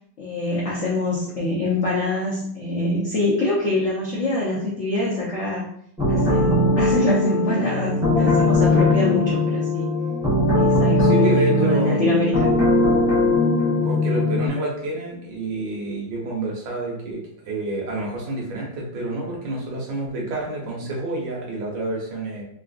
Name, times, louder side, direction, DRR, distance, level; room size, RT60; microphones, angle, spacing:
voice 1, 0.2-5.7 6.1-9.9 10.5-12.5, left 2 dB, 85° left, -6 dB, 0.6 m, -24 dB
sound 1, 6.0-14.5, left 2 dB, 5° right, 0.3 m, -19 dB
voice 2, 11.0-12.1 13.8-22.4, right 1 dB, 75° right, -2 dB, 1.7 m, -28 dB
3.8 x 2.4 x 2.4 m, 0.70 s
omnidirectional pair, 2.2 m